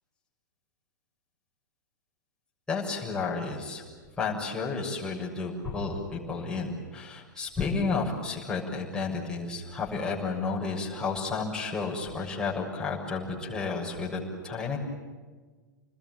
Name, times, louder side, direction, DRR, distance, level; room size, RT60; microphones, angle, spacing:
voice 1, 2.7-3.8 4.2-14.8, left 4 dB, 10° left, -4 dB, 6.7 m, -32 dB
29.0 x 21.0 x 9.3 m, 1.4 s
figure-of-eight pair, 100°, 11 cm